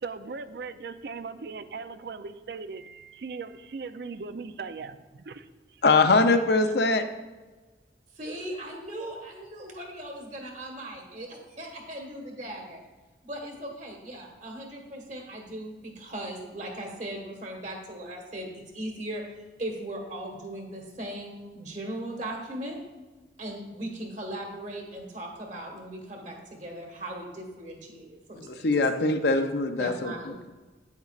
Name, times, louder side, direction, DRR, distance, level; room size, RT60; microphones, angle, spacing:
voice 1, 0.0-5.8 6.2-6.3, right 4 dB, 65° right, 11 dB, 0.4 m, -39 dB
voice 2, 5.8-7.0 28.4-30.1, left 3 dB, 70° left, 8 dB, 0.6 m, -22 dB
voice 3, 8.2-12.8 13.2-22.8 23.4-28.6 28.9-29.1 29.8-30.4, right 1 dB, 45° right, 2 dB, 1.5 m, -38 dB
9.4 x 8.1 x 2.4 m, 1.2 s
head